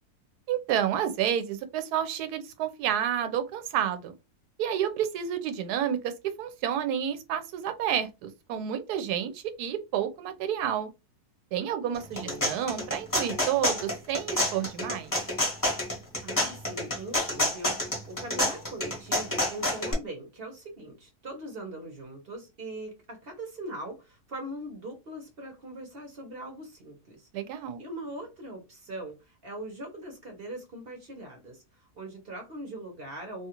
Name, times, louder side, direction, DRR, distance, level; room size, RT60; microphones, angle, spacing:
voice 1, 0.5-4.1 4.6-6.1 6.4-10.9 11.5-15.1 27.3-27.8, right 9 dB, 80° right, 1.1 m, -30 dB
voice 2, 11.8-12.5 16.2-33.5, right 1 dB, 45° right, 0.9 m, -41 dB
sound 1, 11.9-19.9, left 1 dB, 20° left, 0.6 m, -28 dB
2.7 x 2.4 x 2.8 m
omnidirectional pair, 1.7 m